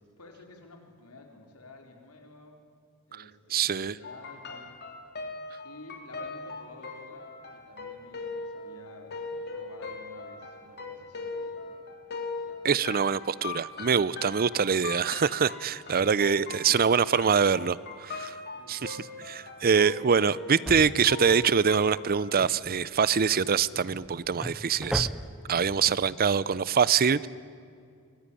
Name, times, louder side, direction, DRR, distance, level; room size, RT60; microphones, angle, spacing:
voice 1, 0.2-2.6 3.1-4.8 5.6-9.2 9.5-12.0 12.4-12.7 15.8-16.7 18.5-19.5 25.4-25.9, left 2 dB, 80° left, 3 dB, 4.0 m, -51 dB
voice 2, 3.5-4.0 12.6-18.4 18.7-19.0 19.2-25.1 25.5-27.3, right 6 dB, 45° right, 20 dB, 0.5 m, -24 dB
sound 1, 4.0-22.3, left 4 dB, 50° left, 3.2 m, -40 dB
Drawer open or close, 20.6-21.5 22.1-25.6 25.9-26.0, equal, 5° right, 0.9 m, -37 dB
24.5 x 19.0 x 9.9 m, 2.3 s
head